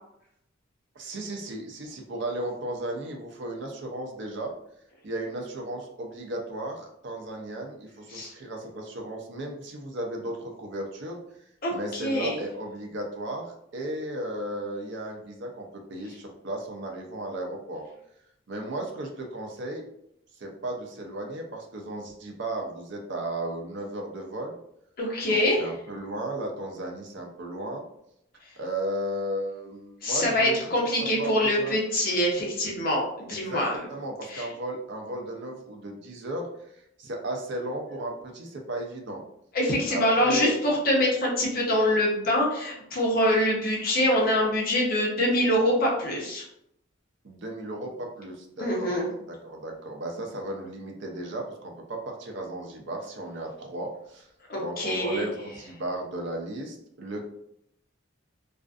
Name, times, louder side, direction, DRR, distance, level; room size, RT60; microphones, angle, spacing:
voice 1, 1.0-4.5 5.0-11.2 11.7-17.8 18.5-19.8 20.4-24.6 25.2-27.9 28.6-31.7 33.3-33.6 33.9-36.5 37.0-39.2 39.9-40.5 47.2-49.0 49.4-54.3 54.6-57.2, right 1 dB, 60° right, 1 dB, 0.5 m, -35 dB
voice 2, 11.6-12.4 25.0-25.7 30.0-33.7 34.3-34.4 39.5-46.4 48.6-49.1 54.5-55.3, left 1 dB, 45° left, -2 dB, 0.7 m, -24 dB
2.4 x 2.4 x 2.3 m, 0.76 s
head